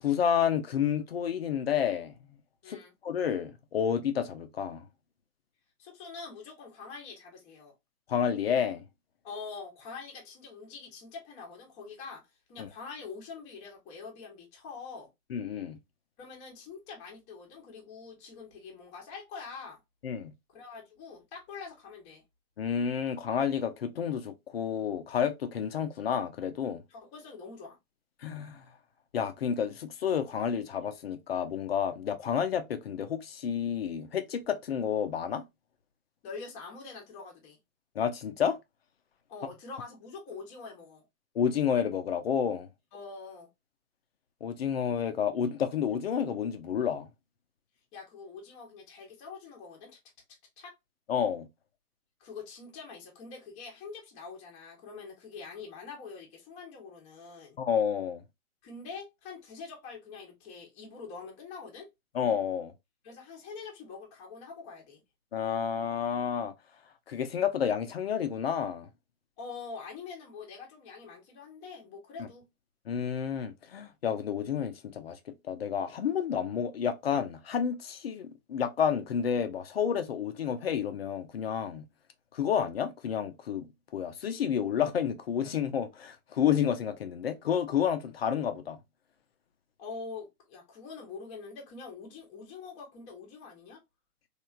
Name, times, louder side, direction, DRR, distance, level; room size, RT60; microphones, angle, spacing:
voice 1, 0.0-2.1 2.7-4.8 8.1-8.8 12.6-12.7 15.3-15.8 20.0-20.3 22.6-26.8 28.2-28.6 29.1-35.4 38.0-38.6 41.4-42.7 44.4-47.1 51.1-51.5 57.6-58.2 62.1-62.7 65.3-66.5 67.1-68.9 72.2-72.3 72.9-75.2 75.5-81.8 82.3-83.7 83.9-88.8, left 8 dB, 45° left, 0.5 m, -30 dB
voice 2, 5.8-7.7 9.2-15.1 16.2-19.8 20.5-22.2 26.9-27.8 36.2-37.6 39.3-41.0 42.9-43.5 47.9-50.0 50.6-50.7 52.2-57.6 58.6-61.9 63.0-65.0 69.4-72.5 89.8-93.8, left 4 dB, 15° left, 0.7 m, -45 dB
3.0 x 2.4 x 2.3 m
figure-of-eight pair, 125°, 44 cm